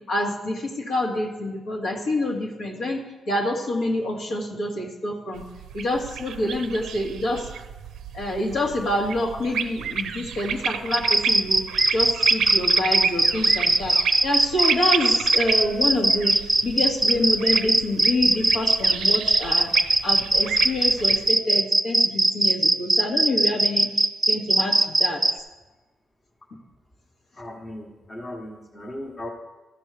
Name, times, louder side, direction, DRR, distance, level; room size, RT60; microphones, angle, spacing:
voice 1, 0.1-5.4 5.7-7.5 8.1-11.6 11.9-16.4 16.6-19.7 20.0-25.2, left 1 dB, 75° left, -2 dB, 1.9 m, -27 dB
sound 1, 5.4-21.3, right 8 dB, 80° right, 0.5 m, -31 dB
sound 2, 10.9-25.3, right 2 dB, 10° right, 0.4 m, -19 dB
voice 2, 27.3-29.3, left 1 dB, 25° left, 1 dB, 1.2 m, -37 dB
13.5 x 5.5 x 4.9 m, 1.1 s
cardioid pair, 115°, 0 cm